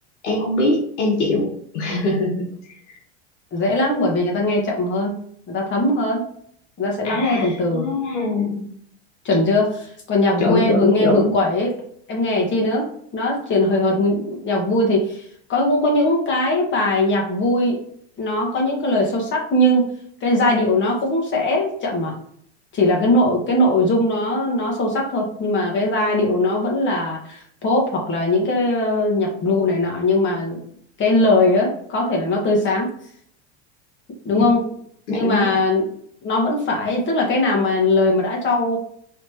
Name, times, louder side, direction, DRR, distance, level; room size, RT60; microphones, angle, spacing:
voice 1, 0.2-2.5 7.0-8.7 10.4-11.4 34.3-34.4 35.1-35.5, left 2 dB, 85° left, 0 dB, 1.3 m, -22 dB
voice 2, 3.5-5.1 5.5-6.2 6.8-7.9 9.2-11.7 12.1-15.2 15.5-17.8 18.2-19.9 20.2-22.1 22.7-30.6 31.0-32.9 34.2-34.6 35.1-35.9 36.2-38.8, left 1 dB, 35° left, -1 dB, 1.7 m, -20 dB
4.2 x 3.3 x 3.0 m, 0.62 s
hypercardioid pair, 105°, 34 cm